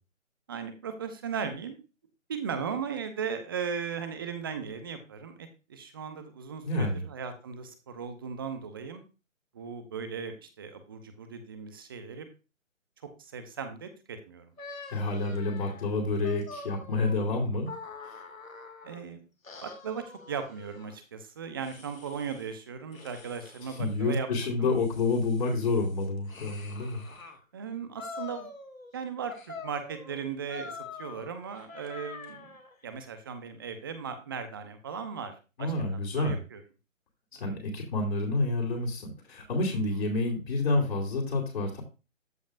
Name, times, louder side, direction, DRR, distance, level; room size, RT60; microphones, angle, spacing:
voice 1, 0.5-1.8 2.3-9.0 9.5-12.3 13.2-14.5 17.5-17.6 18.8-19.2 19.6-24.7 27.5-28.5 28.9-29.3 29.6-32.5 32.8-35.7 36.1-36.6 39.7-39.8, right 6 dB, 15° right, 9 dB, 0.7 m, -37 dB
voice 2, 6.6-7.0 14.9-17.7 18.0-18.1 23.8-27.0 35.6-36.4 37.4-41.8, left 2 dB, 50° left, -2 dB, 2.8 m, -29 dB
sound 1, 14.6-19.0 19.4-21.0 21.6-22.5 22.9-23.9 24.5-27.4 28.0-29.0 29.3-32.7, left 4 dB, 80° left, 2.3 m, -45 dB
14.0 x 5.1 x 2.5 m, 0.30 s
figure-of-eight pair, 150°, 40 cm